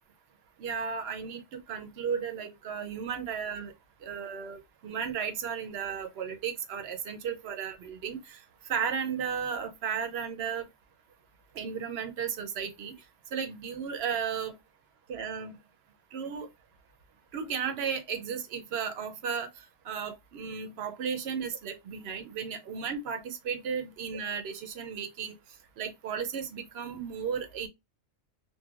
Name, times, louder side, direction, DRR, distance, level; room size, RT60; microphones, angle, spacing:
voice 1, 0.6-3.7 4.0-8.4 8.7-10.7 11.5-12.9 13.3-14.5 15.1-15.5 16.1-16.5 17.3-19.5 19.9-25.3 25.8-27.7, right 7 dB, 65° right, 0.8 m, -34 dB
3.1 x 2.2 x 2.3 m
omnidirectional pair, 1.3 m